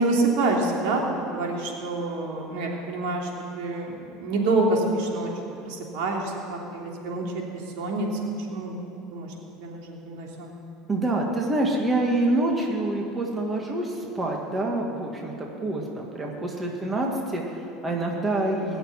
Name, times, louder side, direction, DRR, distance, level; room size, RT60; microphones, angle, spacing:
voice 1, 0.0-3.3 3.5-5.3 5.7-7.5 7.8-8.1 8.5-8.8 9.1-10.5, right 2 dB, 75° right, -1 dB, 3.0 m, -27 dB
voice 2, 10.9-18.8, right 2 dB, 15° right, 0 dB, 1.9 m, -26 dB
21.0 x 7.0 x 9.7 m, 2.8 s
supercardioid pair, 135°, 0 cm